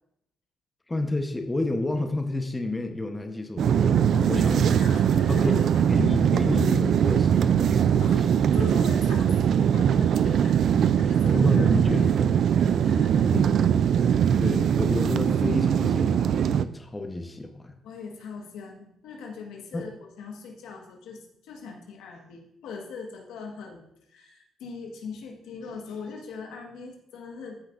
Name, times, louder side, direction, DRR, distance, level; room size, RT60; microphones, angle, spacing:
voice 1, 0.9-4.0 4.3-4.7 5.3-5.6 5.9-8.0 11.3-12.4 13.3-13.5 14.4-17.8 19.7-19.8, left 2 dB, 20° left, 5 dB, 0.9 m, -30 dB
sound 1, 3.6-16.7, right 8 dB, 65° right, 0.3 m, -21 dB
voice 2, 4.1-5.8 8.0-10.6 10.9-12.1 12.8-13.3 13.9-14.4 17.8-19.9 20.2-27.6, left 5 dB, 85° left, 1 dB, 1.4 m, -40 dB
13.5 x 5.7 x 2.5 m, 0.78 s
cardioid pair, 80°, 0 cm